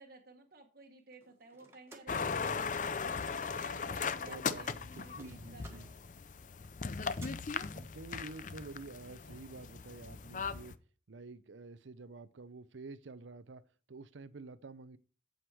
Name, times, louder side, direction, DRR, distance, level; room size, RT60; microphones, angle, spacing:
voice 1, 0.0-2.8 3.2-6.0, right 3 dB, 55° right, 1.2 m, -55 dB
sound 1, 1.1-3.7 4.0-7.3, right 2 dB, 15° right, 1.6 m, -58 dB
sound 2, 2.1-10.7, left 5 dB, 45° left, 0.5 m, -38 dB
voice 2, 4.2-4.7 5.0-5.9 7.7-10.8 11.1-13.6 13.9-15.0, right 3 dB, 90° right, 0.7 m, -49 dB
8.0 x 7.9 x 4.6 m
head